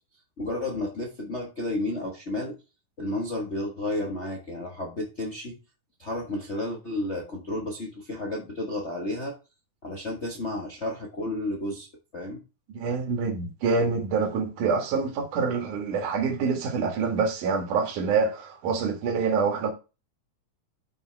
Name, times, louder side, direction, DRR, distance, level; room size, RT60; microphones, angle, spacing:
voice 1, 0.4-2.6 3.0-5.6 6.0-9.4 9.8-11.9 12.1-12.4, left 1 dB, 80° left, 0.6 m, -32 dB
voice 2, 12.7-19.7, right 5 dB, 75° right, 3.1 m, -26 dB
11.0 x 5.5 x 3.4 m
omnidirectional pair, 3.7 m